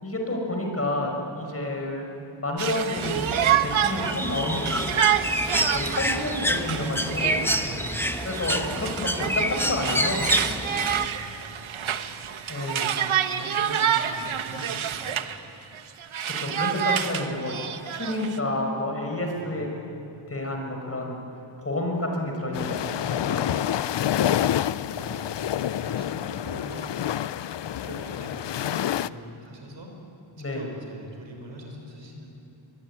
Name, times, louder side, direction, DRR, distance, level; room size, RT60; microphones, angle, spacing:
voice 1, 0.0-2.0 2.4-4.9 5.7-7.4 8.2-10.3 12.5-12.8 16.2-17.5 17.9-19.7 20.3-21.2 21.6-23.6 30.4-30.6, left 1 dB, 30° left, 1 dB, 5.9 m, -29 dB
Conversation, 2.6-15.4 15.7-18.4, right 9 dB, 85° right, 1.2 m, -28 dB
Bird, 3.0-11.1, left 1 dB, 5° left, 1.3 m, -28 dB
voice 2, 7.6-8.0 10.9-13.0 13.3-15.3 19.4-20.2 24.0-27.2 27.8-29.9 30.4-32.3, equal, 65° right, 2 dB, 6.2 m, -43 dB
sound 1, 22.5-29.1, left 11 dB, 65° left, 0.6 m, -28 dB
24.0 x 22.5 x 9.9 m, 2.8 s
wide cardioid pair, 90°, 47 cm